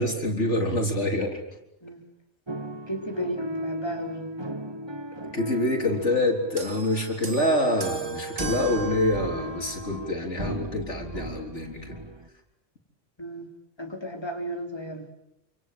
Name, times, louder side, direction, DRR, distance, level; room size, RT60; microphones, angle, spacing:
voice 1, 0.0-1.4 5.3-12.0, left 1 dB, 70° left, 2 dB, 4.3 m, -26 dB
sound 1, 2.5-12.3, equal, 20° right, 1.5 m, -36 dB
voice 2, 2.9-4.3 13.2-13.5 13.8-15.1, right 1 dB, 20° left, 2 dB, 4.0 m, -34 dB
sound 2, 6.6-10.2 11.1-11.2, right 5 dB, 85° right, 2.6 m, -37 dB
28.0 x 27.0 x 7.9 m, 0.82 s
omnidirectional pair, 1.3 m